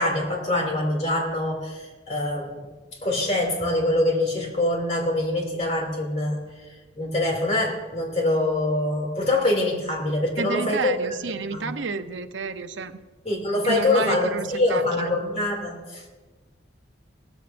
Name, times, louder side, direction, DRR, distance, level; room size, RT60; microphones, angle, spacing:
voice 1, 0.0-2.7 3.0-10.9 11.5-11.7 13.2-16.0, left 1 dB, 35° left, 0 dB, 2.6 m, -24 dB
voice 2, 10.4-13.0 13.6-15.2, right 4 dB, 80° right, 9 dB, 0.7 m, -30 dB
18.0 x 14.0 x 2.6 m, 1.3 s
head